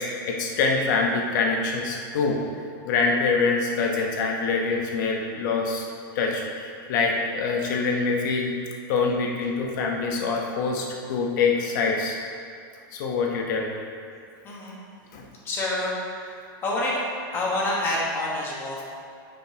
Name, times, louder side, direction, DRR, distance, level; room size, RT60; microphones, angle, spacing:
voice 1, 0.0-2.4 2.8-5.9 6.1-8.5 8.9-12.2 12.9-13.7 15.1-15.2, left 4 dB, 55° left, 0 dB, 1.1 m, -25 dB
voice 2, 14.4-14.7 15.4-15.9 16.6-17.0 17.3-18.8, left 2 dB, 20° left, -5 dB, 1.4 m, -27 dB
9.4 x 5.4 x 2.9 m, 2.3 s
supercardioid pair, 165°, 12 cm